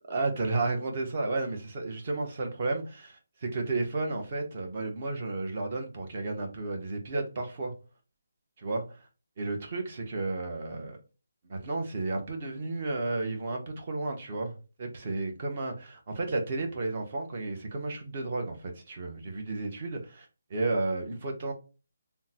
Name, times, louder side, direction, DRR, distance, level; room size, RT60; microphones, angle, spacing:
voice 1, 0.1-7.7 8.6-9.1 9.4-11.0 11.5-21.5, right 3 dB, 35° right, 0.8 m, -32 dB
3.7 x 2.1 x 2.8 m
hypercardioid pair, 170°, 0 cm